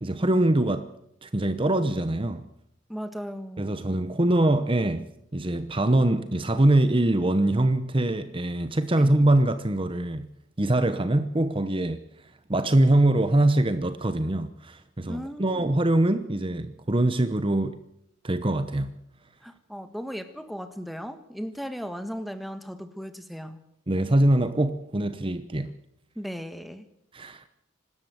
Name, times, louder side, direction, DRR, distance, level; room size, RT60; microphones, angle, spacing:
voice 1, 0.0-0.9 1.2-2.4 3.6-10.3 10.6-12.0 12.5-17.8 18.2-18.9 23.9-25.7 27.1-27.4, right 1 dB, 25° right, 0.9 m, -23 dB
voice 2, 2.9-3.7 9.0-9.1 15.1-15.7 19.4-23.6 26.1-26.9, equal, ahead, 1.4 m, -36 dB
25.0 x 13.0 x 8.0 m
head